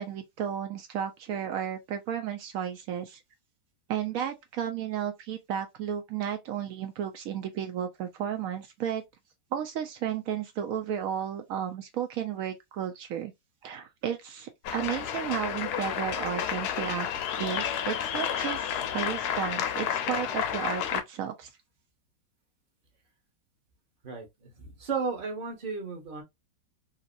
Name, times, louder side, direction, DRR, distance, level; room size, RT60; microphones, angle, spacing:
voice 1, 0.0-3.2 3.9-9.0 9.5-13.3 13.6-17.1 17.4-21.5, right 9 dB, 90° right, 0.7 m, -33 dB
sound 1, 14.6-21.0, left 9 dB, 75° left, 0.9 m, -31 dB
voice 2, 24.6-26.2, right 5 dB, 35° right, 0.9 m, -33 dB
3.0 x 2.7 x 2.5 m
omnidirectional pair, 2.0 m